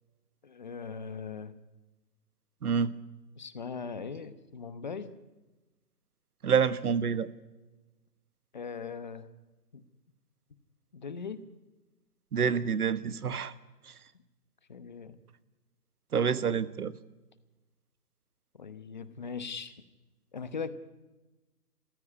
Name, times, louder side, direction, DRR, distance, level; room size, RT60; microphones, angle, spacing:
voice 1, 0.4-1.5 3.4-5.1 8.5-9.3 9.7-9.8 10.9-11.4 14.7-15.2 18.5-19.7 20.3-20.7, left 5 dB, 30° left, 13 dB, 0.9 m, -39 dB
voice 2, 2.6-2.9 6.4-7.3 12.3-13.5 16.1-16.9, right 6 dB, 65° right, 15 dB, 1.4 m, -27 dB
25.0 x 15.5 x 9.8 m, 1.1 s
hypercardioid pair, 170°, 49 cm